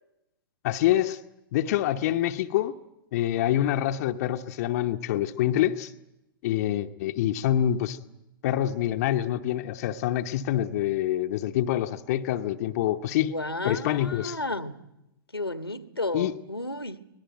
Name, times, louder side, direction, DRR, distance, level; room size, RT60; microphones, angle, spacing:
voice 1, 0.6-1.2 1.5-2.7 3.1-5.9 6.4-8.0 8.4-13.3 13.6-14.4 16.1-16.3, left 12 dB, 45° left, 0.9 m, -26 dB
voice 2, 13.3-14.8 15.3-17.0, left 2 dB, 90° left, 1.4 m, -32 dB
24.0 x 19.0 x 9.1 m
figure-of-eight pair, 110°, 12 cm